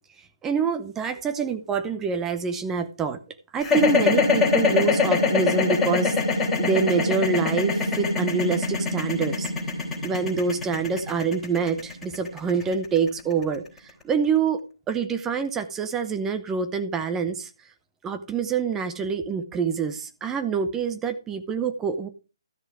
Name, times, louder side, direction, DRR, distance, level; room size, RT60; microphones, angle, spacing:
voice 1, 0.4-3.2 3.5-9.5 10.0-14.6 14.9-17.5 18.0-22.1, right 5 dB, 10° right, 0.9 m, -26 dB
sound 1, 3.6-13.8, left 4 dB, 5° left, 3.5 m, -23 dB
13.0 x 6.7 x 4.7 m
figure-of-eight pair, 140°, 3 cm